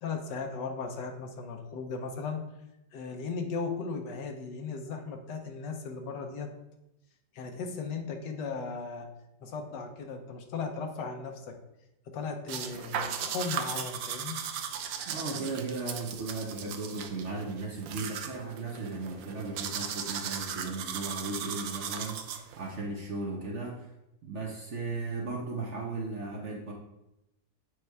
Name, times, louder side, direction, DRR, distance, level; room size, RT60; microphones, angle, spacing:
voice 1, 0.0-2.4 2.9-6.5 7.3-9.1 9.4-11.6 12.1-14.4, left 4 dB, 75° left, 4 dB, 1.4 m, -36 dB
sound 1, 12.5-22.7, right 8 dB, 85° right, 1.4 m, -37 dB
voice 2, 15.1-23.9 24.2-26.7, right 3 dB, 50° right, -1 dB, 0.9 m, -36 dB
8.0 x 3.3 x 4.6 m, 0.88 s
omnidirectional pair, 2.0 m